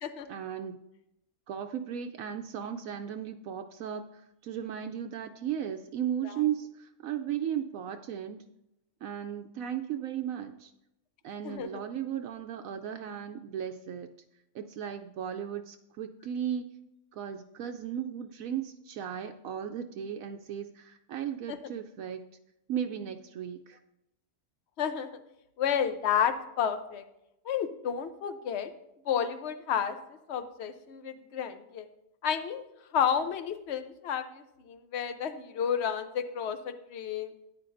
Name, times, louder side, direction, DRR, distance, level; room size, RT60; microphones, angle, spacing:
voice 1, 0.3-0.8 1.5-4.1 4.4-8.4 9.0-10.7 11.2-14.1 14.5-16.7 17.1-22.2 22.7-23.8, right 9 dB, 70° right, 6 dB, 1.0 m, -35 dB
voice 2, 11.4-11.8 21.5-21.6 24.8-25.1 25.6-27.0 27.4-28.7 29.1-30.0 30.3-31.9 32.2-32.6 32.9-37.3, left 8 dB, 55° left, 10 dB, 0.9 m, -31 dB
13.5 x 9.6 x 2.6 m, 0.85 s
omnidirectional pair, 1.5 m